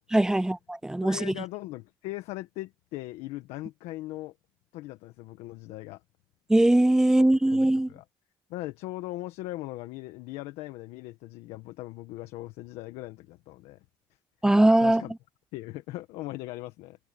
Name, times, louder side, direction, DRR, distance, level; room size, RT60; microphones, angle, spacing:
voice 1, 0.1-1.3 6.5-7.9 14.4-15.0, right 1 dB, 5° right, 0.3 m, -21 dB
voice 2, 1.0-4.3 4.7-6.0 7.2-8.0 8.5-13.8 14.8-15.1 15.5-17.0, left 18 dB, 80° left, 1.6 m, -39 dB
supercardioid pair, 90°, 11 cm